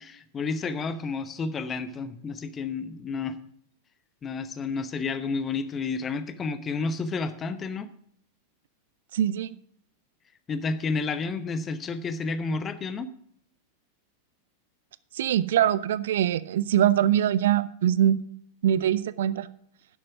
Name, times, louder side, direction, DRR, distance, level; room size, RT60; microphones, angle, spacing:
voice 1, 0.0-3.4 4.2-7.9 10.5-13.1, left 4 dB, 25° left, 13 dB, 0.8 m, -31 dB
voice 2, 9.1-9.5 15.1-18.2 18.6-19.5, right 10 dB, 60° right, 18 dB, 0.4 m, -23 dB
11.0 x 7.5 x 6.0 m, 0.64 s
figure-of-eight pair, 90°, 0 cm